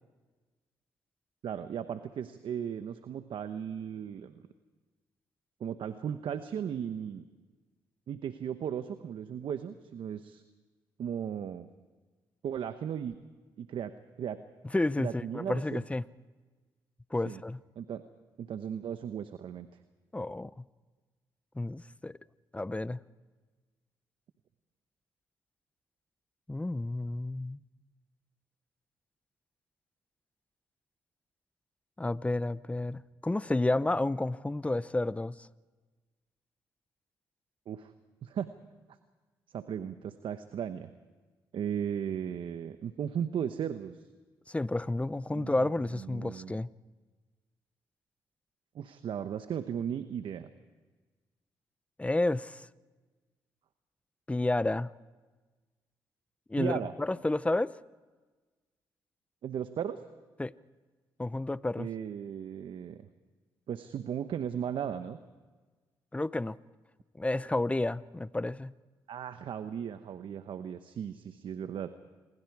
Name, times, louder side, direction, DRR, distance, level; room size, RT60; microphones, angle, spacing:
voice 1, 1.4-4.3 5.6-7.2 8.1-10.4 11.0-11.7 12.4-13.2 13.6-13.9 14.2-14.4 15.0-15.8 17.2-17.4 17.8-18.0 18.4-19.7 37.7-37.9 38.2-38.5 39.5-40.9 41.5-44.0 45.3-45.6 45.9-46.5 48.7-50.5 56.6-56.9 59.4-60.0 61.8-63.1 63.7-65.2 69.1-71.9, right 8 dB, 65° right, 1.0 m, -36 dB
voice 2, 14.7-16.0 17.1-17.6 20.1-20.6 21.6-22.2 22.5-23.0 26.5-27.6 32.0-35.5 44.5-46.7 52.0-52.7 54.3-54.9 56.5-57.7 60.4-60.5 61.2-61.9 66.1-66.6 67.2-68.7, left 2 dB, 15° left, 0.7 m, -31 dB
28.0 x 22.0 x 4.8 m
supercardioid pair, 60°, 9 cm